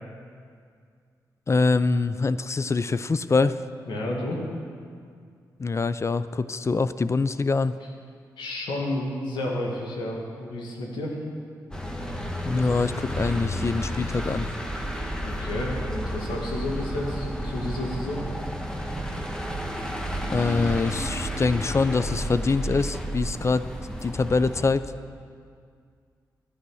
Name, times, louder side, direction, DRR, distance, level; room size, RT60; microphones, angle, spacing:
voice 1, 1.5-3.5 5.6-7.7 12.4-14.5 20.3-23.6 24.0-24.8, left 4 dB, 40° left, 14 dB, 0.5 m, -24 dB
voice 2, 3.9-4.4 8.4-11.2 15.1-18.2, left 1 dB, 85° left, -1 dB, 2.0 m, -31 dB
sound 1, 11.7-24.7, equal, 10° left, 1.4 m, -31 dB
10.5 x 9.8 x 6.3 m, 2.2 s
supercardioid pair, 50°, 8 cm